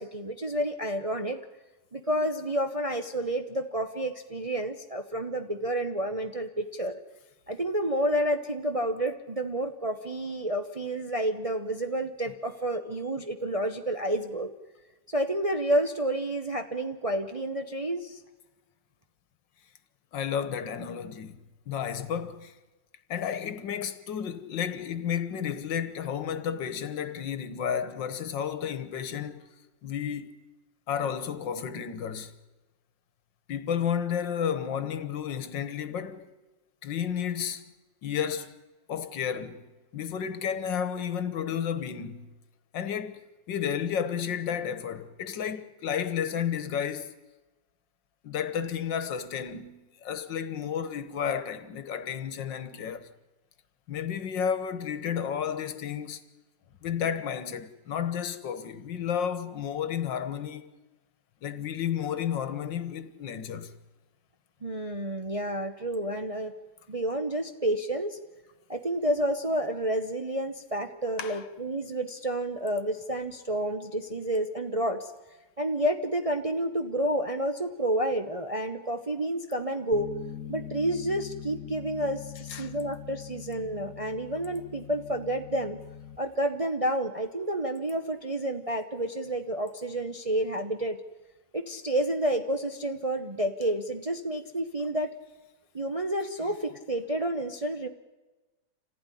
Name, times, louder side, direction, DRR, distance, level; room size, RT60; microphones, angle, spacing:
voice 1, 0.0-1.4 1.9-7.0 7.5-14.5 15.1-18.2 64.6-66.5 66.9-68.2 68.7-75.1 75.6-80.1 80.5-85.8 86.2-91.0 91.5-95.1 95.7-97.9, right 1 dB, 30° right, 0.7 m, -30 dB
voice 2, 20.1-21.4 21.7-22.6 23.1-29.4 29.8-30.3 30.9-32.3 33.5-36.3 36.8-37.6 38.0-38.5 38.9-39.6 39.9-42.3 42.7-43.2 43.5-47.1 48.2-53.1 53.9-56.2 56.8-60.7 61.4-63.7 71.2-71.5 82.5-82.7, left 8 dB, 80° left, 1.9 m, -32 dB
Bass guitar, 79.9-86.2, left 9 dB, 55° left, 1.5 m, -42 dB
26.0 x 15.5 x 9.9 m
omnidirectional pair, 1.9 m